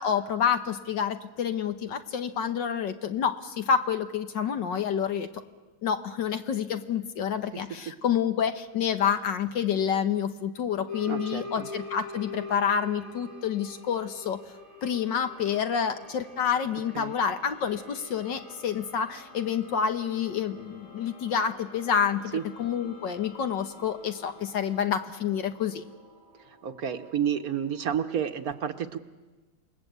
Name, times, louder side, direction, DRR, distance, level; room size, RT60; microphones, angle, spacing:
voice 1, 0.0-5.4 5.8-14.4 14.8-25.8, left 7 dB, 65° left, 8 dB, 1.6 m, -28 dB
sound 1, 10.9-28.0, left 2 dB, 85° left, 8.8 m, -46 dB
voice 2, 11.1-11.7 16.9-17.1 22.3-22.4 26.6-29.0, right 8 dB, 55° right, 9 dB, 1.3 m, -30 dB
28.0 x 20.0 x 8.1 m, 1.2 s
omnidirectional pair, 2.2 m